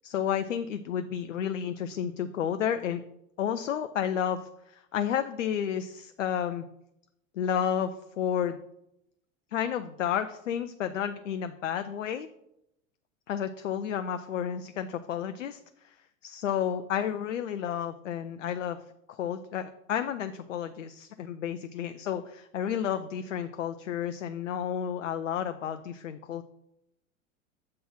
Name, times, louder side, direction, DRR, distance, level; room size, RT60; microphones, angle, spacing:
voice 1, 0.0-3.0 3.4-6.6 7.3-8.6 9.5-12.3 13.3-16.0 16.2-18.8 19.1-26.4, left 9 dB, 70° left, 9 dB, 0.5 m, -31 dB
7.5 x 3.8 x 6.0 m, 0.82 s
figure-of-eight pair, 85°, 39 cm